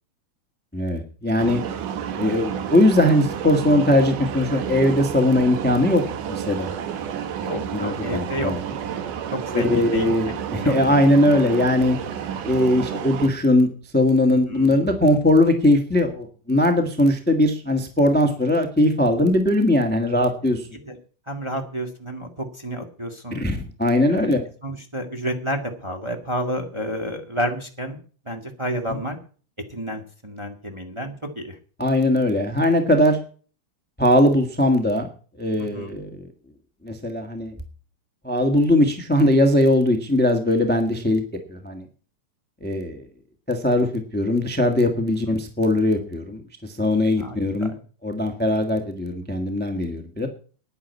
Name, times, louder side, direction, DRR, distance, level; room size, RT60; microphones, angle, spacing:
voice 1, 0.7-1.6 2.2-6.0 6.3-6.8 7.7-8.6 9.5-12.0 12.4-13.7 13.9-20.7 23.3-24.4 31.8-33.2 34.0-35.1 35.4-36.2 36.8-37.5 38.2-41.2 41.5-41.8 42.6-43.1 43.5-47.7 48.0-50.3, left 1 dB, 10° left, 6 dB, 0.6 m, -20 dB
sound 1, 1.4-13.3, right 8 dB, 90° right, 2.9 m, -30 dB
voice 2, 7.4-8.5 9.3-10.3 10.6-10.7 14.3-14.7 20.8-21.0 21.3-23.5 24.1-24.3 24.6-28.0 28.2-29.2 29.7-31.6 35.6-36.0 47.2-47.8, equal, 15° right, 2 dB, 1.1 m, -30 dB
10.5 x 9.9 x 8.3 m, 0.41 s
omnidirectional pair, 3.5 m